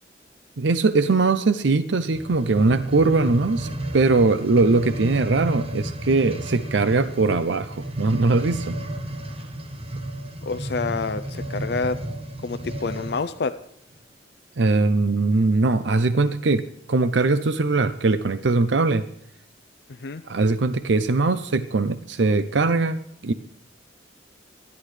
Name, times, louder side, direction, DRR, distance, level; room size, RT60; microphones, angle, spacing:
voice 1, 0.6-8.8 14.6-16.6 16.9-19.0 20.2-23.3, right 3 dB, 75° right, 12 dB, 0.6 m, -21 dB
sound 1, 2.0-13.3 14.0-14.1, right 1 dB, 30° right, 1.1 m, -32 dB
voice 2, 10.4-12.0 12.4-13.6 20.0-20.2, left 4 dB, 60° left, 11 dB, 0.5 m, -28 dB
25.0 x 11.0 x 3.3 m, 0.71 s
head